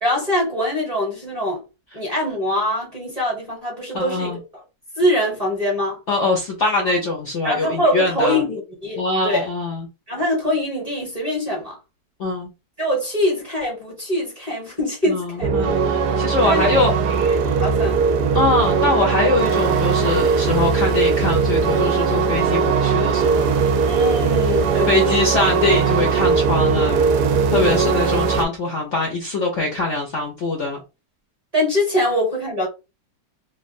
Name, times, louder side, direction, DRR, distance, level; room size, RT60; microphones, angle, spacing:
voice 1, 0.0-1.6 1.9-4.4 5.0-6.0 7.4-9.5 10.1-11.8 12.8-15.5 16.0-16.8 17.6-18.0 23.8-25.1 27.5-27.8 31.5-32.7, left 1 dB, 25° right, 1.0 m, -23 dB
voice 2, 3.9-4.4 6.1-8.4 9.0-9.9 12.2-12.5 15.1-16.9 18.3-23.5 24.9-27.0 27.5-30.8, left 3 dB, 55° left, 0.8 m, -22 dB
sound 1, 15.4-28.4, right 5 dB, 70° right, 1.0 m, -19 dB
3.2 x 2.3 x 2.5 m
omnidirectional pair, 1.8 m